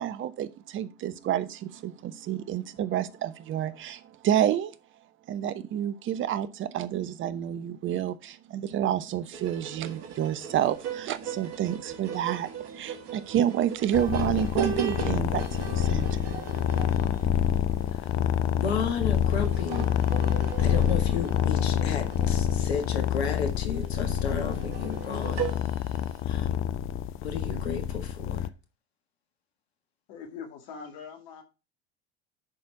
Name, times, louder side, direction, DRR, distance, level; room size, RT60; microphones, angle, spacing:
voice 1, 0.0-4.7 5.3-16.5, right 10 dB, 40° right, 0.9 m, -29 dB
sound 1, 9.3-26.2, right 7 dB, 70° right, 1.8 m, -39 dB
sound 2, 13.9-28.5, left 10 dB, 40° left, 0.6 m, -27 dB
voice 2, 18.6-19.9 20.6-25.9 26.2-26.7 27.2-28.5, left 5 dB, 80° left, 1.7 m, -33 dB
voice 3, 30.1-31.4, left 6 dB, 60° left, 2.2 m, -42 dB
11.0 x 4.3 x 4.6 m
hypercardioid pair, 80°, 32 cm